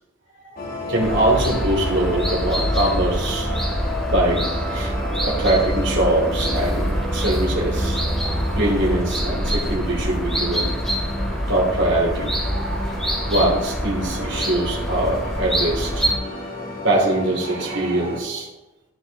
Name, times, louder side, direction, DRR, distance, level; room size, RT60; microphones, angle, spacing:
voice 1, 0.5-3.5 4.1-10.7 11.5-16.0 16.8-18.5, right 1 dB, 60° right, -2 dB, 2.8 m, -23 dB
sound 1, 0.6-18.2, left 1 dB, 45° left, 2.5 m, -32 dB
sound 2, 1.0-16.2, equal, ahead, 2.7 m, -25 dB
15.0 x 6.2 x 2.9 m, 0.97 s
head